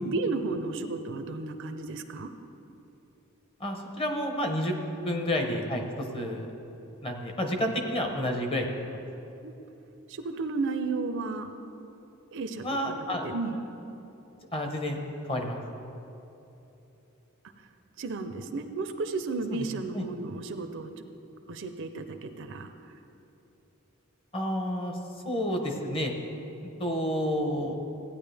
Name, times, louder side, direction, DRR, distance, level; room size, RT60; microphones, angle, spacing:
voice 1, 0.0-2.3 9.4-9.5 10.1-11.5 12.3-13.6 18.0-21.0 21.5-22.7, right 3 dB, 55° right, 8 dB, 0.6 m, -33 dB
voice 2, 3.6-4.7 5.0-5.8 6.1-6.5 7.0-9.0 12.6-13.3 14.5-15.0 15.3-15.6 19.9-20.1 24.3-25.0 25.2-26.1 26.8-27.8, equal, 25° left, 3 dB, 1.0 m, -30 dB
15.5 x 9.3 x 3.4 m, 3.0 s
head